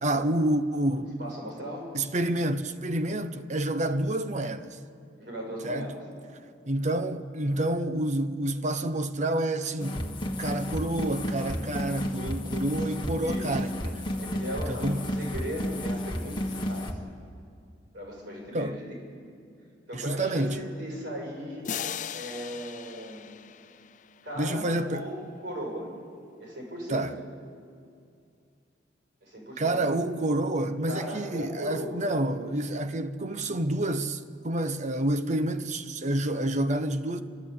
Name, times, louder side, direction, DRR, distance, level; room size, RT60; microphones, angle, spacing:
voice 1, 0.0-1.2 1.9-4.8 5.6-5.9 6.7-10.1 10.4-14.0 14.7-15.1 18.5-18.8 19.9-20.6 24.4-25.1 26.9-27.1 29.6-37.2, right 1 dB, 40° right, 0.9 m, -28 dB
voice 2, 1.2-1.9 5.2-6.0 13.2-13.6 14.2-17.0 17.9-18.8 19.9-21.7 22.1-23.3 24.2-25.9 26.4-27.1 29.2-29.8 30.8-32.0, equal, 65° right, 7.3 m, -37 dB
sound 1, 9.8-16.9, left 1 dB, 25° left, 1.7 m, -32 dB
sound 2, 21.6-24.5, left 8 dB, 45° left, 0.5 m, -38 dB
28.5 x 13.0 x 8.6 m
head